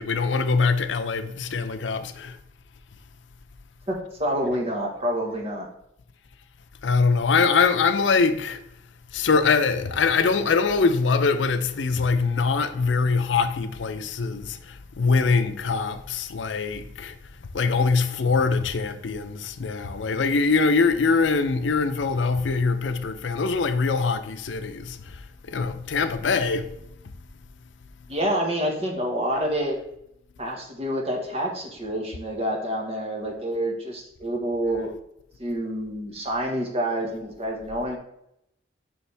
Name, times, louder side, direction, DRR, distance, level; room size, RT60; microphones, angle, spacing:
voice 1, 0.0-2.4 6.8-8.6 9.1-17.1 17.5-26.7, left 4 dB, 80° left, 0.5 m, -23 dB
voice 2, 3.9-5.7 28.1-29.8 30.4-35.0 35.4-38.0, equal, 35° right, 1.4 m, -28 dB
7.0 x 5.4 x 3.3 m
head